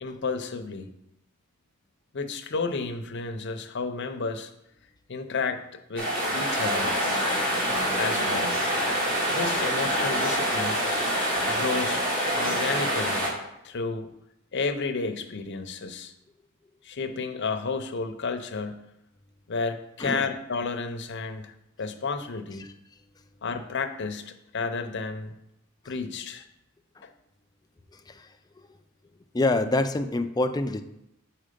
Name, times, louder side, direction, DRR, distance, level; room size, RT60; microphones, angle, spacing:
voice 1, 0.0-0.9 2.1-4.5 5.1-5.6 5.9-7.0 8.0-8.6 9.3-10.8 11.5-12.0 12.3-13.3 13.6-14.1 14.5-16.1 16.8-18.9 19.5-21.5 21.8-22.7 23.4-25.3 25.9-26.5 27.0-27.1, left 4 dB, 55° left, 7 dB, 0.7 m, -31 dB
sound 1, 6.0-13.3, equal, 45° right, 2.1 m, -26 dB
voice 2, 27.9-28.7 29.3-30.8, left 2 dB, 20° left, 8 dB, 0.4 m, -27 dB
7.6 x 4.4 x 5.1 m, 0.83 s
head